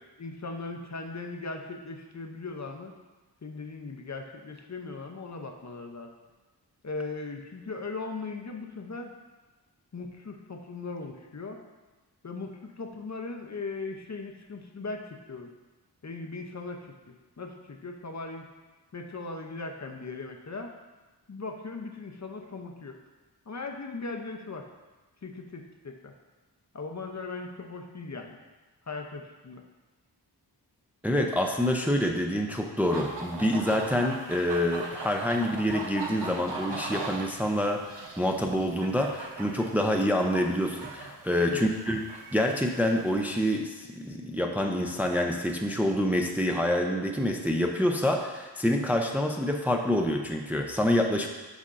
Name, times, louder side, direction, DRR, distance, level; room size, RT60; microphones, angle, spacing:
voice 1, 0.2-2.9 3.4-6.1 6.8-9.1 9.9-11.6 12.2-15.5 16.0-18.4 18.9-20.7 21.3-23.0 23.5-24.7 25.2-26.2 26.7-28.4 28.9-29.6 41.5-41.7, left 3 dB, 40° left, 3 dB, 0.7 m, -38 dB
voice 2, 31.0-42.0 42.3-51.3, left 1 dB, 5° right, 2 dB, 0.5 m, -27 dB
sound 1, 32.8-43.4, right 3 dB, 90° right, 0.9 m, -40 dB
8.3 x 5.2 x 2.5 m, 1.2 s
wide cardioid pair, 55°, 41 cm